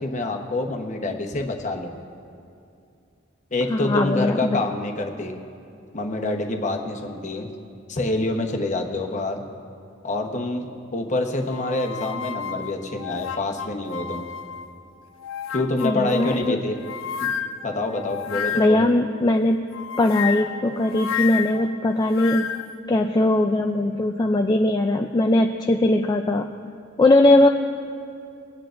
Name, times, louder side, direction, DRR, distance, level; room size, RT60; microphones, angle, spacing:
voice 1, 0.0-1.9 3.5-5.3 5.9-7.5 7.9-9.4 10.0-10.7 10.9-14.3 15.5-16.8 17.2-17.3 17.6-18.9, left 2 dB, 40° left, 3 dB, 1.0 m, -26 dB
voice 2, 3.7-4.6 15.8-16.6 18.6-19.6 20.0-22.5 22.9-26.5 27.0-27.5, left 1 dB, 20° left, 3 dB, 0.3 m, -20 dB
sound 1, 11.5-14.8 15.2-18.9 19.7-22.8, left 8 dB, 90° left, 0.4 m, -31 dB
24.0 x 9.2 x 2.5 m, 2.5 s
head